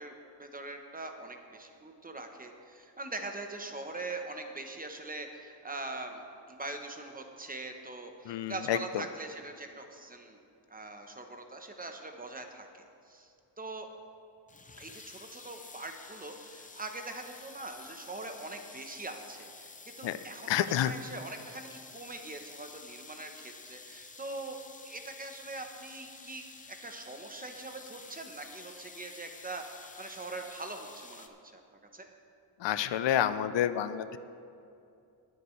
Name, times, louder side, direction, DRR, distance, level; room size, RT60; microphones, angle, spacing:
voice 1, 0.0-10.4 10.7-13.9 14.8-24.6 24.8-26.4 26.8-31.6 31.9-32.1, right 2 dB, 20° right, 5 dB, 0.8 m, -42 dB
voice 2, 8.3-8.8 20.0-20.2 20.5-20.9 32.6-34.2, left 11 dB, 75° left, 13 dB, 0.5 m, -29 dB
sound 1, 14.5-31.3, left 4 dB, 20° left, 0.6 m, -51 dB
21.5 x 8.0 x 3.2 m, 2.6 s
wide cardioid pair, 140°, 44 cm